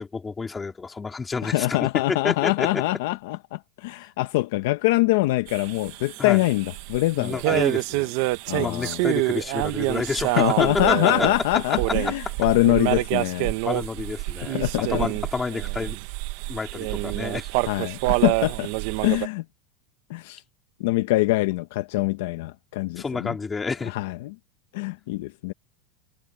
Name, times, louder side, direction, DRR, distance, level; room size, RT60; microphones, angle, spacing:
voice 1, 0.0-2.8 6.2-6.4 7.2-8.1 8.6-11.3 11.7-11.8 12.0-12.1 13.6-14.6 14.9-16.0 16.5-17.5 23.0-23.9, left 4 dB, 10° left, 3.4 m, -29 dB
voice 2, 1.4-7.6 8.5-9.0 10.3-13.5 14.4-15.1 17.7-18.7 19.0-19.4 20.1-20.4 20.8-23.4 23.8-24.3 24.7-25.5, left 19 dB, 55° left, 0.7 m, -24 dB
sound 1, 5.5-19.3, right 20 dB, 45° right, 0.9 m, -27 dB
supercardioid pair, 175°, 0 cm